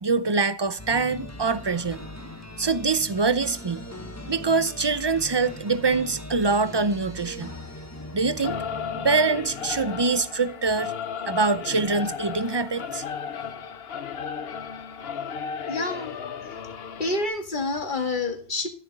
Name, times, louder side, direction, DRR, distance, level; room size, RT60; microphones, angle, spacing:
voice 1, 0.0-2.0 2.6-3.9 4.3-7.5 8.1-8.6 9.0-10.9 11.3-13.0, right 4 dB, 30° right, 0.6 m, -24 dB
sound 1, 0.8-10.6, left 1 dB, 15° left, 1.3 m, -40 dB
Singing / Musical instrument, 8.4-17.3, left 7 dB, 65° left, 1.1 m, -34 dB
voice 2, 15.7-16.2 17.0-18.7, left 2 dB, 50° left, 1.9 m, -28 dB
13.5 x 8.3 x 4.0 m
omnidirectional pair, 1.1 m